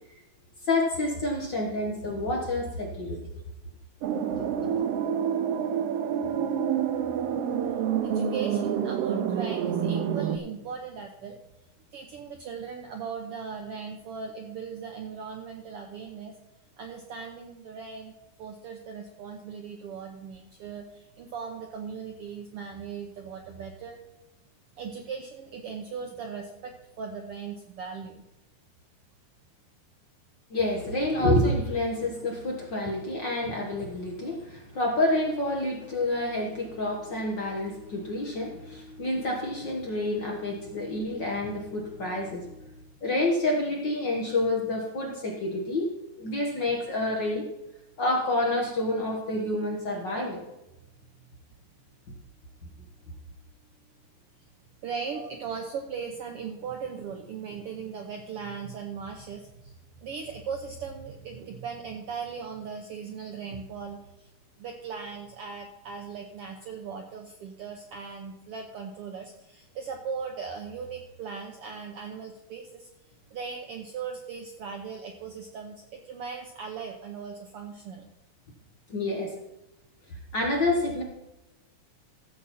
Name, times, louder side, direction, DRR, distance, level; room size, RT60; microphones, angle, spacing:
voice 1, 0.7-3.2 4.3-4.8 30.5-42.6 43.0-45.9 46.2-47.4 48.0-50.4 78.9-79.3 80.3-81.0, left 1 dB, 50° left, 0 dB, 1.5 m, -28 dB
sound 1, 4.0-10.4, right 8 dB, 85° right, 1.3 m, -28 dB
voice 2, 6.2-6.5 7.3-7.4 8.0-11.4 11.9-16.3 16.8-18.1 18.4-24.0 24.8-28.2 54.8-64.3 64.6-72.9 73.3-78.1, right 6 dB, 70° right, 3 dB, 1.4 m, -38 dB
14.5 x 7.6 x 4.2 m, 0.96 s
omnidirectional pair, 3.6 m